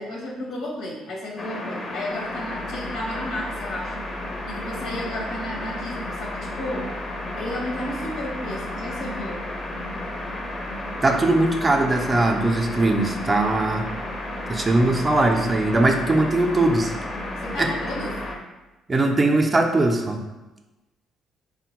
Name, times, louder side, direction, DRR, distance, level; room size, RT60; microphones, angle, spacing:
voice 1, 0.0-4.0 4.5-6.9 7.3-9.4 17.4-18.3, left 1 dB, 80° left, -2 dB, 0.8 m, -33 dB
sound 1, 1.4-18.4, left 1 dB, 35° left, 0.5 m, -32 dB
voice 2, 11.0-13.9 14.5-16.9 17.6-17.7 18.9-20.2, right 2 dB, 25° right, 3 dB, 0.4 m, -20 dB
3.4 x 2.1 x 2.9 m, 1.1 s
cardioid pair, 85°, 0 cm